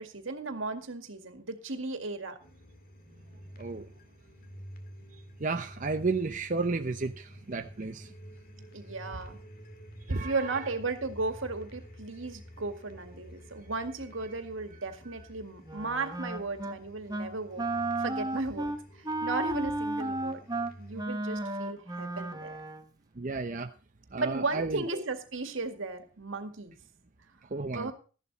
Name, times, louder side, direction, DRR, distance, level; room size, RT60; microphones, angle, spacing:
voice 1, 0.0-2.4 8.7-9.4 10.1-17.6 18.0-20.5 20.8-22.6 24.1-26.7 27.7-27.9, right 3 dB, 75° right, 7 dB, 2.0 m, -35 dB
sound 1, 2.4-21.1, equal, 45° left, 2.0 m, -50 dB
voice 2, 3.6-3.9 5.4-8.1 10.1-10.7 23.2-23.7 24.1-25.0 27.5-27.9, right 3 dB, 40° right, 5 dB, 0.8 m, -32 dB
Wind instrument woodwind instrument, 15.6-16.8 17.1-17.3 17.6-22.9, right 2 dB, 20° right, 1.1 m, -33 dB
14.0 x 11.5 x 4.1 m, 0.38 s
head